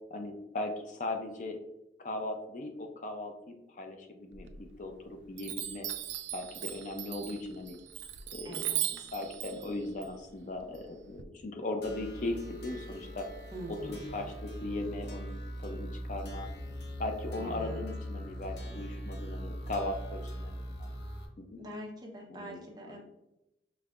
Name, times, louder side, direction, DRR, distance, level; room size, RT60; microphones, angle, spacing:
voice 1, 0.1-1.6 2.0-5.9 6.3-7.8 8.3-8.6 8.9-13.3 13.7-16.5 17.0-20.9 21.5-21.6 22.3-23.0, left 2 dB, 45° left, 4 dB, 0.5 m, -38 dB
Chime, 4.3-5.0 5.4-11.2, right 11 dB, 80° right, 0.4 m, -38 dB
voice 2, 8.4-8.8 13.5-14.3 17.4-17.8 21.6-23.0, right 1 dB, 25° right, -1 dB, 0.8 m, -44 dB
sound 1, 11.8-21.3, equal, 70° left, 0.8 m, -41 dB
5.1 x 3.3 x 2.4 m, 0.91 s
head